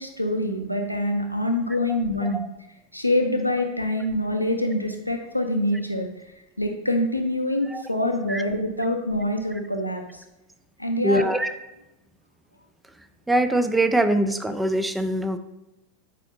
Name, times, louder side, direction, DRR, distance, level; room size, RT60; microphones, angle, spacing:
voice 1, 0.0-2.4 2.9-6.1 6.6-10.2 10.8-11.3, left 1 dB, 90° left, 3 dB, 0.7 m, -25 dB
voice 2, 1.9-2.5 7.7-7.8 8.3-8.4 11.0-11.5 13.3-15.4, right 1 dB, 5° right, 10 dB, 0.5 m, -23 dB
8.2 x 5.1 x 2.7 m, 0.94 s
figure-of-eight pair, 90°, 0 cm